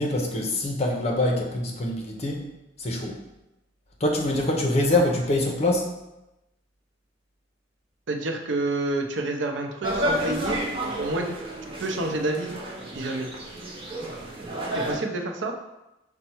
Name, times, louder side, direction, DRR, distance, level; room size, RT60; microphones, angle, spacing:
voice 1, 0.0-2.5 2.8-3.2 4.0-5.9, left 1 dB, 35° left, 1 dB, 0.7 m, -24 dB
voice 2, 8.1-11.3 11.8-12.6 12.9-13.3 14.7-15.5, right 2 dB, 85° right, 4 dB, 0.6 m, -28 dB
sound 1, 9.8-15.0, right 1 dB, 30° right, 0.7 m, -31 dB
5.2 x 2.2 x 4.3 m, 0.95 s
head